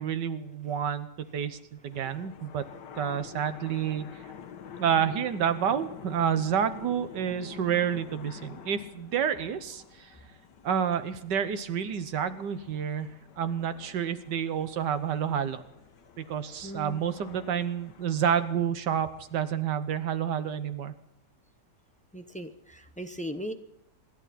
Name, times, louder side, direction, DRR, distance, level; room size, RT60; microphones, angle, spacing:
voice 1, 0.0-2.7 3.0-4.1 4.8-10.1 10.6-13.1 13.4-15.6 16.2-20.9, right 8 dB, 85° right, 11 dB, 1.7 m, -29 dB
sound 1, 1.9-19.5, left 8 dB, 80° left, 1.6 m, -48 dB
voice 2, 4.5-4.8 16.6-17.0 22.1-23.5, equal, 10° left, 7 dB, 0.4 m, -39 dB
26.0 x 11.5 x 4.3 m, 0.79 s
omnidirectional pair, 1.8 m